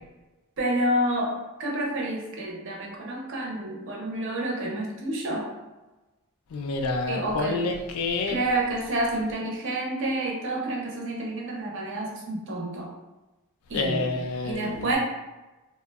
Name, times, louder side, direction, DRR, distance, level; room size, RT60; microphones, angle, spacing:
voice 1, 0.6-5.5 7.1-7.6 8.3-12.9 13.7-14.1 14.4-15.0, right 1 dB, 55° right, -1 dB, 0.5 m, -29 dB
voice 2, 6.5-8.4 13.7-14.9, left 3 dB, 80° left, 4 dB, 0.3 m, -28 dB
2.8 x 2.0 x 2.2 m, 1.1 s
head